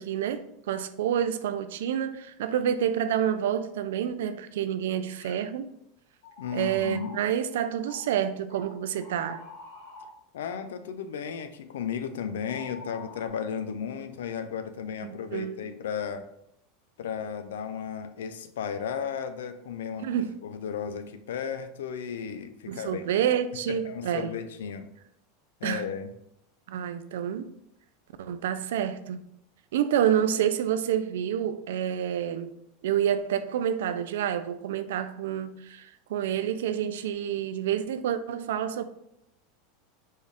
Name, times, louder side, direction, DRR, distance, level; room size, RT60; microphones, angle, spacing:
voice 1, 0.0-5.7 6.5-9.4 15.0-15.6 20.0-20.4 22.7-24.3 25.6-25.8 26.7-27.5 28.2-29.2 29.7-32.5 32.8-38.8, right 9 dB, 80° right, 0.3 m, -28 dB
sound 1, 5.0-5.4 6.2-7.2 7.9-8.1 8.5-10.1 12.4-13.3, left 3 dB, 65° left, 1.3 m, -46 dB
voice 2, 6.4-7.2 10.3-16.3 17.0-20.1 20.4-23.0 23.7-24.9 25.6-26.1, left 7 dB, 90° left, 0.4 m, -34 dB
4.2 x 2.4 x 3.4 m
supercardioid pair, 130°, 0 cm